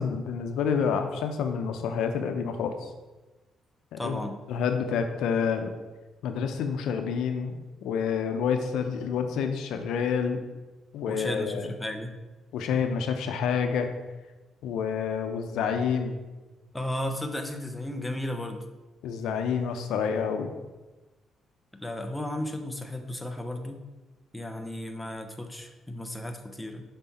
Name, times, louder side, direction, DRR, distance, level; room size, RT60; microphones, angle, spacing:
voice 1, 0.0-2.9 3.9-4.2 4.5-5.7 6.2-10.4 10.9-11.7 12.5-13.9 14.6-16.2 19.0-20.5, left 6 dB, 85° left, 6 dB, 0.6 m, -28 dB
voice 2, 4.0-4.4 11.1-12.2 16.7-18.7 21.8-23.8 24.3-26.8, left 1 dB, 10° left, 5 dB, 0.8 m, -34 dB
5.9 x 5.5 x 4.2 m, 1.1 s
cardioid pair, 90°, 0 cm